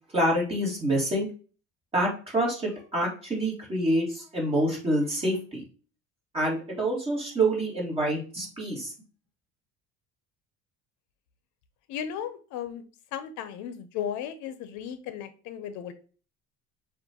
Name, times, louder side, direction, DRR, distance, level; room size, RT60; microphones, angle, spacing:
voice 1, 0.1-1.3 1.9-5.6 6.3-8.9, right 1 dB, 20° right, -3 dB, 2.0 m, -27 dB
voice 2, 11.9-12.8 13.1-15.9, left 9 dB, 70° left, 10 dB, 0.7 m, -35 dB
6.8 x 2.5 x 2.8 m, 0.37 s
cardioid pair, 155°, 29 cm